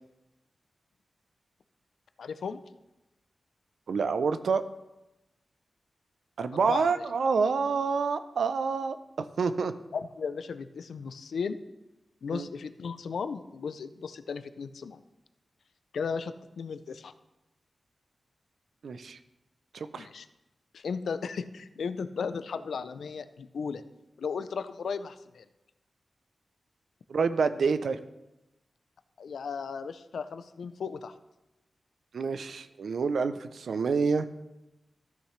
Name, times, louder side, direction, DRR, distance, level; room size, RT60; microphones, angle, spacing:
voice 1, 2.2-2.6 6.7-7.0 9.9-11.6 12.2-15.0 15.9-17.1 19.9-20.3 20.7-23.8 24.2-25.5 29.2-31.1, left 5 dB, 90° left, 12 dB, 0.4 m, -35 dB
voice 2, 3.9-4.6 6.4-9.0 9.4-9.7 12.3-12.5 18.8-19.2 19.7-20.1 27.1-28.0 32.1-34.3, right 5 dB, 75° right, 11 dB, 0.5 m, -27 dB
14.0 x 6.5 x 3.2 m, 0.98 s
wide cardioid pair, 145°, 0 cm